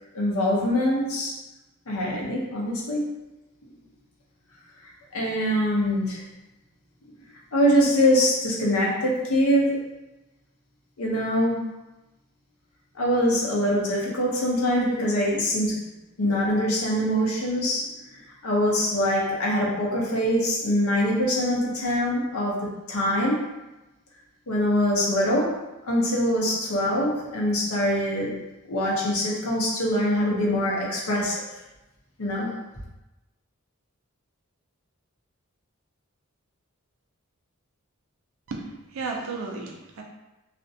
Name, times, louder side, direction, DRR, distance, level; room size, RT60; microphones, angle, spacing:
voice 1, 0.1-1.3 1.9-3.1 5.1-6.2 7.5-9.9 11.0-11.6 12.9-15.8 16.2-23.5 24.5-25.6 25.9-28.3 28.7-31.4 32.2-32.5, equal, 85° left, -4 dB, 0.7 m, -24 dB
voice 2, 38.5-40.0, right 3 dB, 70° right, 0 dB, 0.4 m, -34 dB
2.4 x 2.1 x 2.6 m, 1.0 s
head